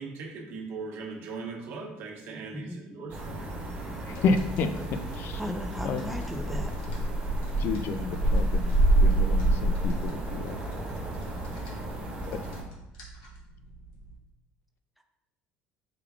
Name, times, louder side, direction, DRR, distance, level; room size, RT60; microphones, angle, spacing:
voice 1, 0.0-3.4, right 4 dB, 65° right, 1.0 m, -39 dB
sound 1, 3.1-12.6, right 2 dB, 30° right, 1.3 m, -28 dB
sound 2, 3.9-14.2, right 2 dB, 85° left, 1.2 m, -50 dB
voice 2, 4.1-4.7 5.2-5.4 5.8-6.0 7.6-10.6 12.3-12.4, left 4 dB, 60° left, 0.4 m, -30 dB
voice 3, 5.4-6.7, equal, ahead, 0.5 m, -36 dB
5.0 x 3.4 x 2.4 m
supercardioid pair, 95°, 4 cm